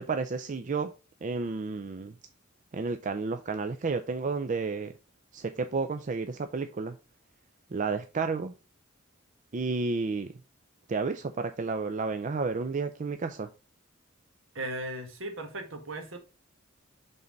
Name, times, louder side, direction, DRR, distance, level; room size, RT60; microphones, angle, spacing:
voice 1, 0.1-0.9 1.2-2.1 2.7-4.9 5.3-7.0 7.7-8.5 9.5-10.3 10.9-13.5, right 4 dB, 40° right, 0.4 m, -31 dB
voice 2, 14.5-16.2, right 1 dB, 70° right, 1.5 m, -37 dB
5.5 x 3.9 x 5.0 m
head